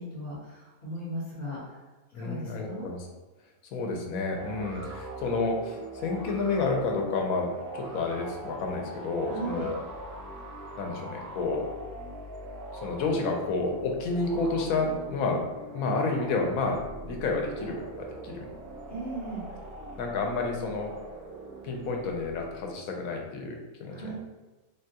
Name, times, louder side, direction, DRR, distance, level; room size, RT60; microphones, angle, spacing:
voice 1, 0.0-1.8 2.1-2.9 9.2-9.7 18.9-19.5 23.9-24.1, right 1 dB, 40° left, -11 dB, 1.0 m, -37 dB
voice 2, 2.1-3.0 3.7-9.8 10.8-11.7 12.7-15.5 15.7-18.5 20.0-20.9 21.6-24.1, left 3 dB, 85° left, 1 dB, 1.0 m, -30 dB
sound 1, 4.3-22.8, right 2 dB, 80° right, 1.0 m, -42 dB
3.5 x 2.2 x 2.7 m, 1.2 s
omnidirectional pair, 1.4 m